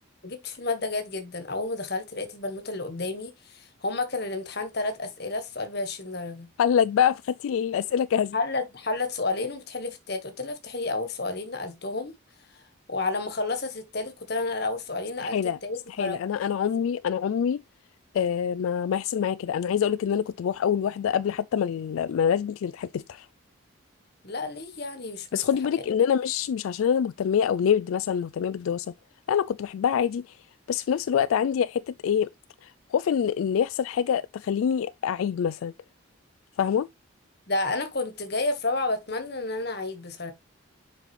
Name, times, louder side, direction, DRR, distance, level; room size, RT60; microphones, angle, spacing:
voice 1, 0.2-6.5 8.3-12.1 12.5-12.6 12.9-16.2 24.2-25.5 25.9-26.0 37.5-40.3, left 3 dB, 50° left, 1.5 m, -31 dB
voice 2, 6.6-8.4 15.2-15.6 15.9-17.6 18.1-23.3 25.3-28.9 29.3-30.4 30.7-32.3 32.6-35.7 36.6-36.9, left 8 dB, 80° left, 0.3 m, -25 dB
7.3 x 5.3 x 3.2 m
head